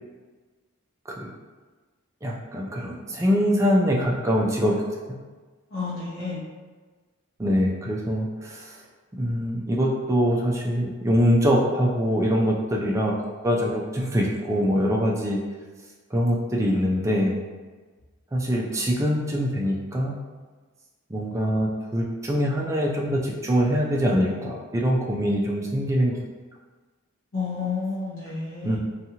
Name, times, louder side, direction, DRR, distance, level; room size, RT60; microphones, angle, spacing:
voice 1, 2.2-4.8 7.4-8.7 9.1-13.1 13.4-15.4 16.1-17.3 18.3-20.1 21.1-26.2 28.6-28.8, equal, 15° right, -2 dB, 0.3 m, -23 dB
voice 2, 5.7-6.4 27.3-28.8, left 4 dB, 65° left, -10 dB, 0.6 m, -30 dB
2.8 x 2.3 x 2.7 m, 1.4 s
head